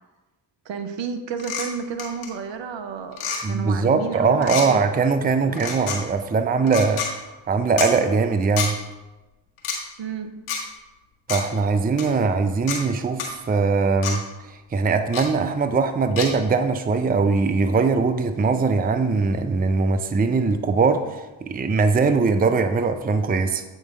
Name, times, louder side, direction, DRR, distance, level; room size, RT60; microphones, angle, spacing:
voice 1, 0.6-3.2 3.5-4.8 5.4-5.8 10.0-10.3, right 6 dB, 60° right, 8 dB, 0.9 m, -31 dB
sound 1, 1.4-1.7 2.0-2.3 3.1-3.4 4.4-4.7 5.5-6.0 6.7-7.1 7.8-7.9 8.6-8.7 9.6-9.8 10.5-10.6 11.3-11.4 12.0-12.1 12.7-12.8 13.2-13.3 14.0-14.2 15.1-15.3 16.2-16.3, left 6 dB, 75° left, 1.4 m, -27 dB
voice 2, 3.4-7.1 7.5-8.8 11.3-23.6, right 4 dB, 20° right, 9 dB, 0.5 m, -21 dB
7.6 x 3.8 x 5.1 m, 1.1 s
hypercardioid pair, 40°, 49 cm